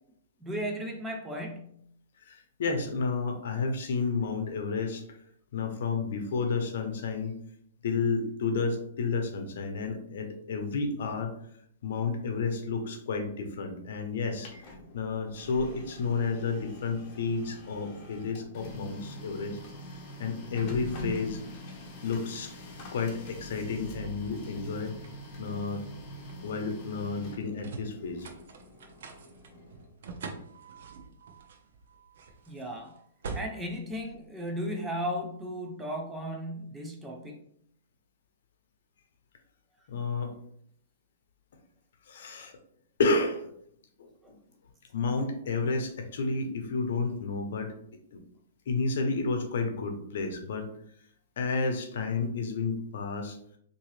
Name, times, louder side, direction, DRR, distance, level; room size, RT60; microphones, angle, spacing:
voice 1, 0.4-1.7 32.5-32.9 33.3-37.4 44.2-44.3, equal, 10° right, 2 dB, 0.5 m, -35 dB
voice 2, 2.2-5.2 5.5-7.4 7.8-11.3 11.8-19.6 19.9-21.4 22.0-22.5 22.9-24.9 25.4-25.8 26.4-28.3 39.9-40.3 42.0-42.5 43.0-43.5 44.0-44.1 44.9-47.7 48.1-48.2 48.7-50.7 51.4-53.4, left 4 dB, 65° left, 5 dB, 0.7 m, -31 dB
Printer, 14.1-29.9, equal, 35° left, 0.9 m, -45 dB
sound 1, 22.5-34.9, right 4 dB, 65° right, 0.6 m, -46 dB
3.7 x 2.7 x 3.1 m, 0.69 s
hypercardioid pair, 150°, 0 cm